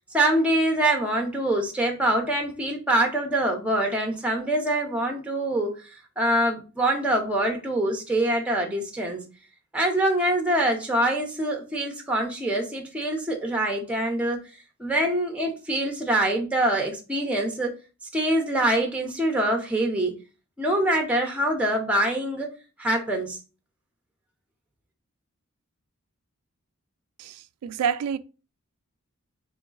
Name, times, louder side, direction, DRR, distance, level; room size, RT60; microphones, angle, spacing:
voice 1, 0.1-5.8 6.2-9.2 9.7-14.4 14.8-17.7 18.1-20.1 20.6-22.5 22.8-23.4, right 1 dB, 5° right, 0.7 m, -24 dB
voice 2, 27.2-28.2, right 7 dB, 90° right, 0.3 m, -28 dB
3.7 x 3.1 x 3.8 m
head